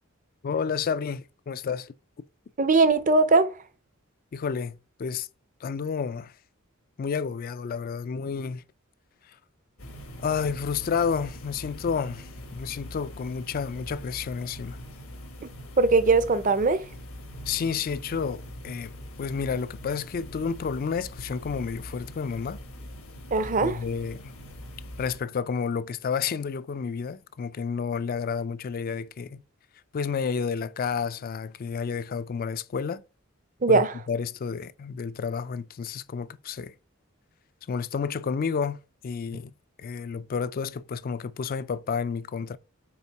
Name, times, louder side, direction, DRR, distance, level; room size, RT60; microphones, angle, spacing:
voice 1, 0.4-1.9 4.3-5.3 5.6-6.3 7.0-8.6 10.2-14.8 17.5-22.6 23.6-24.3 25.0-29.4 29.9-33.0 33.7-36.7 37.7-39.5 39.8-42.6, left 6 dB, 40° left, 0.3 m, -30 dB
voice 2, 2.6-3.5 15.4-15.5 15.8-16.8 23.3-23.8 33.6-33.9, right 3 dB, 35° right, 0.5 m, -20 dB
sound 1, 9.8-25.2, equal, 80° left, 1.4 m, -42 dB
5.5 x 4.4 x 4.5 m
head